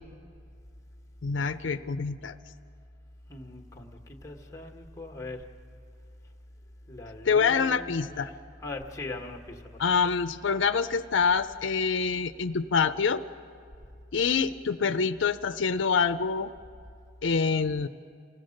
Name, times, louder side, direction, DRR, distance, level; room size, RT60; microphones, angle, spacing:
voice 1, 1.2-2.4 7.2-8.3 9.8-13.2 14.1-16.5 17.2-17.9, left 5 dB, 80° left, 10 dB, 0.5 m, -26 dB
voice 2, 3.3-5.5 6.9-8.1 8.6-9.8, left 2 dB, 15° left, 2 dB, 1.4 m, -40 dB
27.5 x 16.5 x 6.5 m, 2.4 s
head